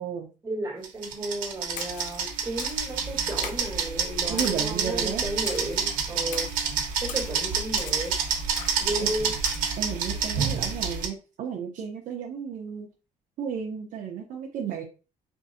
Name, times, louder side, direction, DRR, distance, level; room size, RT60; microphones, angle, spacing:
voice 1, 0.4-6.5 7.0-8.2 8.8-9.3, right 1 dB, 20° right, -3 dB, 1.8 m, -33 dB
sound 1, 0.8-11.1, right 6 dB, 90° right, 1.0 m, -28 dB
Splash splatter, 1.8-2.2 2.6-2.9 3.4-3.8 4.4-4.8 5.5-5.8 6.3-6.6 7.1-7.3 7.8-8.1 8.6-8.9 9.4-9.7, left 6 dB, 80° left, 0.6 m, -39 dB
voice 2, 4.3-5.2 9.0-9.1 9.8-12.9 13.4-14.8, right 7 dB, 65° right, 0 dB, 0.8 m, -33 dB
4.6 x 2.7 x 2.7 m, 0.32 s
cardioid pair, 170°, 14 cm